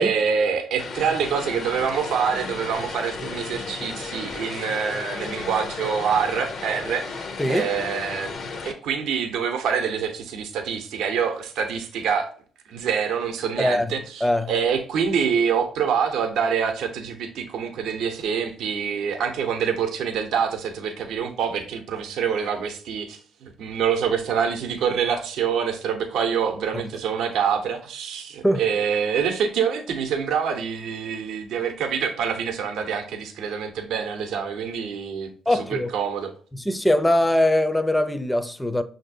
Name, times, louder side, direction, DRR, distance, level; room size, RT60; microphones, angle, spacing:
voice 1, 0.0-8.3 8.6-12.3 12.7-36.3, right 7 dB, 80° right, 0.6 m, -26 dB
Vehicle, 0.8-8.7, left 4 dB, 60° left, 0.6 m, -34 dB
voice 2, 13.6-13.9 14.2-14.5 28.4-28.6 35.5-35.9 36.6-38.8, left 1 dB, 5° left, 0.4 m, -21 dB
5.9 x 2.6 x 2.6 m
cardioid pair, 90°, 0 cm